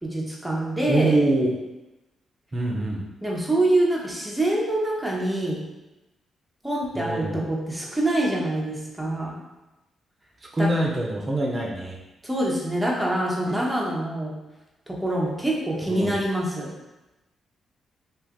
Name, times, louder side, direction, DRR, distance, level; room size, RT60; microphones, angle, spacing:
voice 1, 0.0-1.2 3.2-5.6 6.6-9.4 10.6-10.7 12.2-14.3 14.9-16.7, right 1 dB, 10° right, -4 dB, 1.0 m, -25 dB
voice 2, 0.9-1.5 2.5-3.0 6.9-7.4 10.5-12.0 15.9-16.2, right 2 dB, 35° right, -1 dB, 0.8 m, -24 dB
2.7 x 2.6 x 3.7 m, 1.0 s
supercardioid pair, 55°, 0 cm